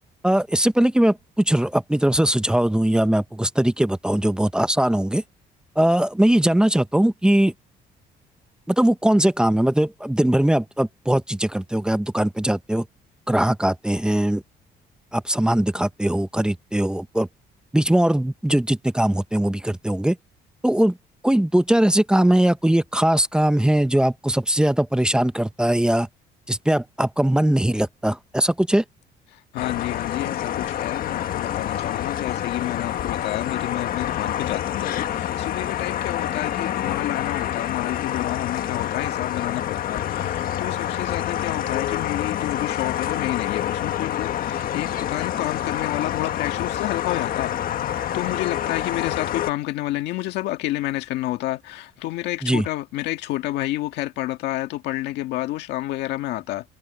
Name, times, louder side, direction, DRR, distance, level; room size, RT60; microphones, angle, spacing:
voice 1, 0.2-5.2 5.8-7.5 8.7-12.9 13.3-14.4 15.1-17.3 17.7-20.2 20.6-21.0 21.2-26.1 26.5-28.8 52.4-52.6, right 1 dB, 5° right, 1.0 m, -20 dB
voice 2, 29.3-47.5 48.1-56.7, left 16 dB, 85° left, 1.7 m, -29 dB
sound 1, 29.6-49.5, left 11 dB, 60° left, 1.5 m, -27 dB
cardioid pair, 110°, 17 cm